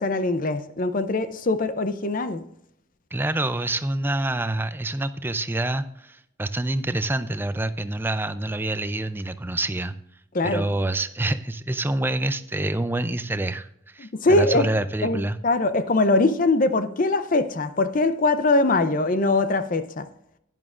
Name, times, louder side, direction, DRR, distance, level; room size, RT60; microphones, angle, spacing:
voice 1, 0.0-2.4 10.3-10.7 14.0-14.7 15.0-20.1, left 2 dB, 40° left, 0.5 m, -22 dB
voice 2, 3.1-9.9 10.4-15.4, right 2 dB, 10° right, 0.4 m, -27 dB
11.0 x 11.0 x 2.5 m
head